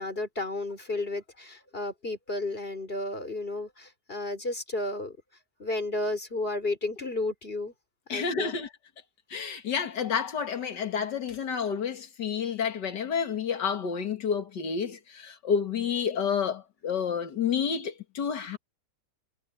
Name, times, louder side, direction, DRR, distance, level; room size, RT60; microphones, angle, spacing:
voice 1, 0.0-5.2 5.6-7.7 8.1-8.6, left 2 dB, 35° left, 3.8 m, -32 dB
voice 2, 8.1-8.7 9.3-18.6, left 6 dB, 85° left, 2.4 m, -30 dB
omnidirectional pair, 1.8 m